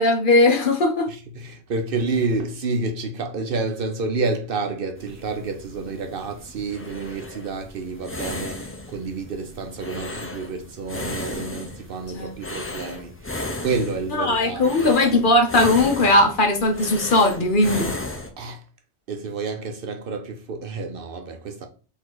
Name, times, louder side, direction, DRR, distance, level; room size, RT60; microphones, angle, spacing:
voice 1, 0.0-1.1 12.2-12.3 14.1-17.9, left 2 dB, 50° left, 0.9 m, -18 dB
voice 2, 1.1-13.3 13.6-15.2 18.4-18.6 19.1-21.7, right 3 dB, 60° right, 0.7 m, -29 dB
sound 1, 5.0-18.3, left 2 dB, 20° left, 0.4 m, -35 dB
4.0 x 2.7 x 4.6 m
omnidirectional pair, 1.1 m